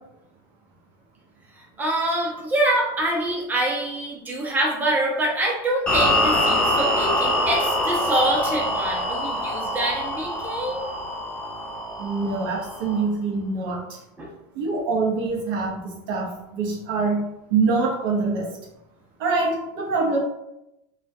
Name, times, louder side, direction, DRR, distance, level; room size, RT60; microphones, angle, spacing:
voice 1, 1.6-10.9 14.2-14.3, right 1 dB, 15° right, -3 dB, 0.7 m, -25 dB
sound 1, 5.9-13.0, left 1 dB, 10° left, 1.0 m, -24 dB
voice 2, 12.0-14.0 14.5-18.6 19.2-20.2, right 4 dB, 75° right, -2 dB, 0.7 m, -25 dB
2.3 x 2.1 x 2.6 m, 0.87 s
supercardioid pair, 115°, 12 cm